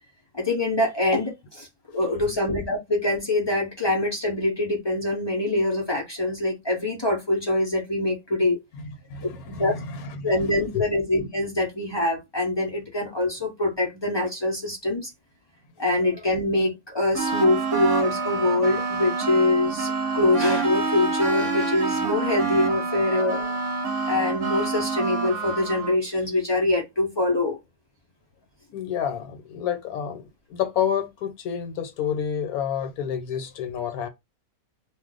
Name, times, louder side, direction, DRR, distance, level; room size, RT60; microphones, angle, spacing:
voice 1, 0.3-1.7 1.9-8.6 9.2-9.7 10.2-15.1 15.8-23.6 24.1-27.6, left 2 dB, 35° left, 0.4 m, -24 dB
voice 2, 9.1-10.3 10.7-10.8 28.7-34.1, left 8 dB, 75° left, 1.1 m, -29 dB
sound 1, 17.1-26.0, right 4 dB, 60° right, 0.9 m, -27 dB
2.5 x 2.2 x 3.7 m
omnidirectional pair, 1.6 m